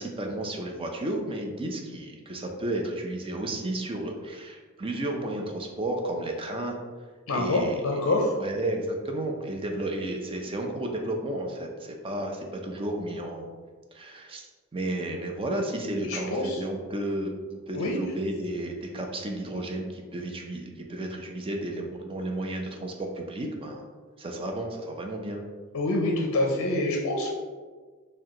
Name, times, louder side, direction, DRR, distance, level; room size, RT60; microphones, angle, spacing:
voice 1, 0.0-6.8 7.3-7.8 8.4-13.5 13.9-14.5 14.7-23.8 24.2-25.4, right 1 dB, 25° right, 2 dB, 0.5 m, -32 dB
voice 2, 7.3-8.4 16.1-16.6 17.7-18.0 25.7-27.3, left 2 dB, 60° left, 0 dB, 0.5 m, -26 dB
4.6 x 2.2 x 3.7 m, 1.4 s
head